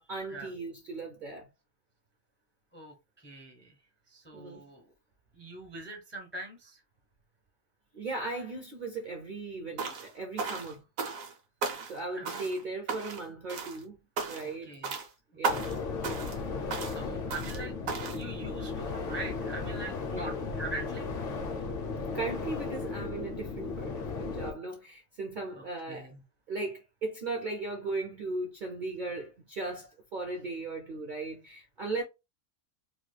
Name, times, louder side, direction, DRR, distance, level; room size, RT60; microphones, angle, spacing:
voice 1, 0.0-1.5 4.3-4.6 7.9-10.8 11.8-13.9 14.2-15.0 15.4-15.7 17.6-17.7 20.1-20.4 22.1-26.1 26.5-32.0, right 3 dB, 60° right, 0.5 m, -37 dB
voice 2, 2.7-3.7 4.1-4.9 5.3-6.8 12.1-12.5 14.6-14.9 15.6-15.8 16.8-17.8 18.1-21.1 25.5-26.1, right 2 dB, 20° left, 0.3 m, -43 dB
sound 1, 9.8-10.1 10.4-11.3 11.6-12.0 12.2-12.6 12.9-13.2 13.5-13.8 14.2-14.5 14.8-15.1 15.4-15.8 16.0-16.4 16.7-17.0 17.3-17.6 17.9-18.2, right 4 dB, 80° right, 1.2 m, -35 dB
sound 2, 15.5-24.5, left 4 dB, 55° left, 0.7 m, -35 dB
3.0 x 2.3 x 3.2 m
omnidirectional pair, 1.4 m